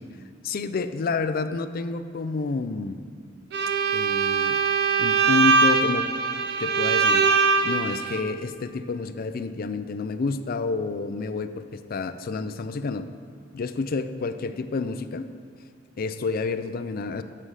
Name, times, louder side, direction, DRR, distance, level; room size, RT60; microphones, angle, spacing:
voice 1, 0.4-3.0 3.9-4.6 5.0-6.1 6.6-7.3 7.6-13.1 13.5-15.3 16.0-17.2, left 4 dB, 50° left, 10 dB, 0.4 m, -29 dB
Bowed string instrument, 3.5-8.2, right 5 dB, 60° right, 0.6 m, -22 dB
7.6 x 7.5 x 4.8 m, 2.3 s
head